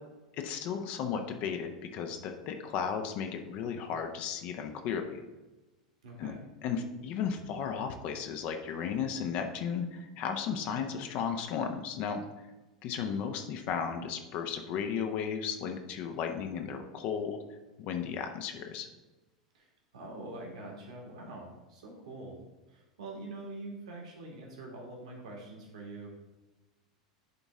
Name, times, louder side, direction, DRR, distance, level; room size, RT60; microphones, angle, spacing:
voice 1, 0.4-5.2 6.2-6.3 6.6-12.5 12.8-17.4 17.8-18.9, left 7 dB, 45° left, 5 dB, 0.8 m, -35 dB
voice 2, 6.0-6.4 19.5-19.7 19.9-22.4 22.7-26.1, right 2 dB, 60° right, -1 dB, 2.0 m, -44 dB
10.5 x 4.1 x 3.6 m, 1.1 s
figure-of-eight pair, 85°, 4 cm